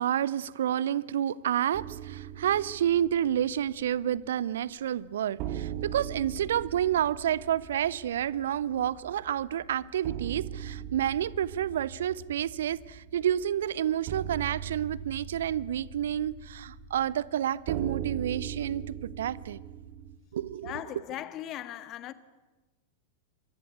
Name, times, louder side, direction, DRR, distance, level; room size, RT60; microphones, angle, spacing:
voice 1, 0.0-19.6 20.3-20.7, right 10 dB, 60° right, 0.8 m, -29 dB
sound 1, 1.7-4.6 4.8-4.9 5.4-20.2, right 10 dB, 40° right, 2.2 m, -40 dB
sound 2, 7.6-17.2, right 1 dB, 15° right, 7.7 m, -55 dB
voice 2, 20.6-22.1, left 12 dB, 35° left, 1.6 m, -38 dB
26.0 x 23.5 x 8.2 m
figure-of-eight pair, 90°, 0 cm